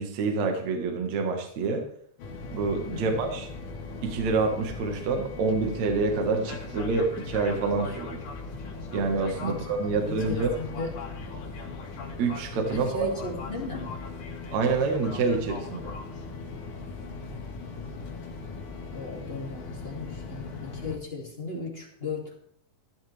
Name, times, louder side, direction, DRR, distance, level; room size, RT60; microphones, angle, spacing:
voice 1, 0.0-1.8 2.5-3.5 4.0-8.2 8.9-10.6 12.2-13.1 14.5-15.9, right 4 dB, 60° right, 3 dB, 2.7 m, -27 dB
sound 1, 2.2-21.0, left 4 dB, 70° left, 3.0 m, -39 dB
voice 2, 2.9-3.3 9.4-9.7 10.1-11.1 12.7-14.0 18.9-22.4, left 3 dB, 20° left, 0 dB, 2.3 m, -36 dB
15.0 x 13.5 x 3.4 m, 0.63 s
omnidirectional pair, 3.7 m